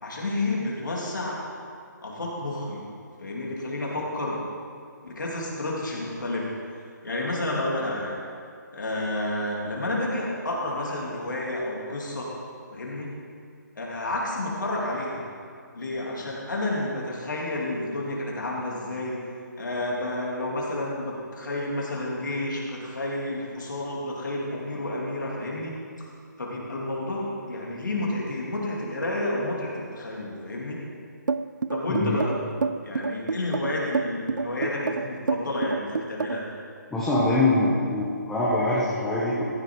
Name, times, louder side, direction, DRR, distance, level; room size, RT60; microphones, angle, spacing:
voice 1, 0.0-1.4 2.0-2.8 3.2-4.4 5.0-6.5 7.0-8.2 8.7-12.3 12.7-13.1 13.8-15.2 15.7-25.8 26.4-30.8 31.7-32.4 32.8-36.5, left 1 dB, 75° left, -3 dB, 3.1 m, -30 dB
sound 1, 31.3-36.5, right 4 dB, 80° right, 0.5 m, -28 dB
voice 2, 36.9-39.4, left 2 dB, 5° left, -9 dB, 1.2 m, -23 dB
14.5 x 7.6 x 4.8 m, 2.3 s
figure-of-eight pair, 155°, 10 cm